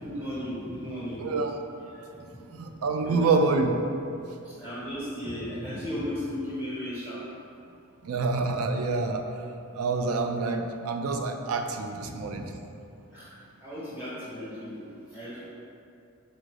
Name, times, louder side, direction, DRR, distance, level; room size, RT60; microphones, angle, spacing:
voice 1, 0.0-1.2 2.1-2.2 3.0-3.3 4.4-7.2 12.0-12.5 13.1-13.3 13.6-15.5, equal, 5° right, -12 dB, 1.1 m, -35 dB
voice 2, 1.2-1.5 2.6-3.7 8.0-9.2 9.7-12.4, right 3 dB, 70° right, 5 dB, 0.4 m, -27 dB
4.3 x 2.6 x 4.7 m, 2.6 s
head